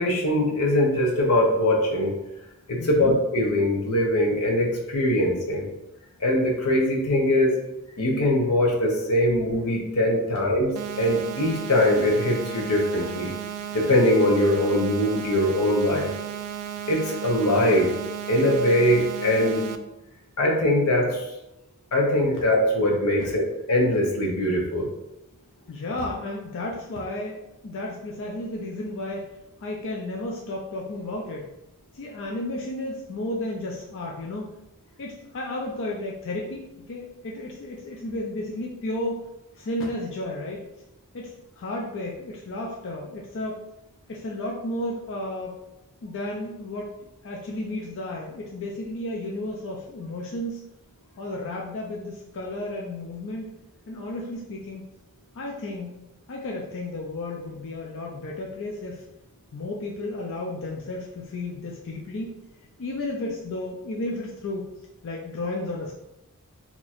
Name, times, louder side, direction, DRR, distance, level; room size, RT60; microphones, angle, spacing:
voice 1, 0.0-2.1 2.7-5.7 6.2-7.6 8.0-13.3 13.7-16.1 16.9-17.9 18.3-19.6 20.4-21.3 21.9-23.4 23.7-24.9, left 1 dB, 85° left, 0 dB, 0.9 m, -22 dB
voice 2, 2.8-3.1 25.7-31.5 31.9-34.5 35.0-39.2 39.6-40.7 41.1-43.6 44.1-45.6 46.0-47.0 47.2-50.6 51.2-53.5 53.9-54.9 55.3-59.0 59.5-62.3 62.8-64.7 65.0-65.9, left 1 dB, 60° left, -1 dB, 0.5 m, -33 dB
sound 1, 10.8-19.8, right 9 dB, 75° right, 0.3 m, -34 dB
2.9 x 2.4 x 4.2 m, 0.91 s
head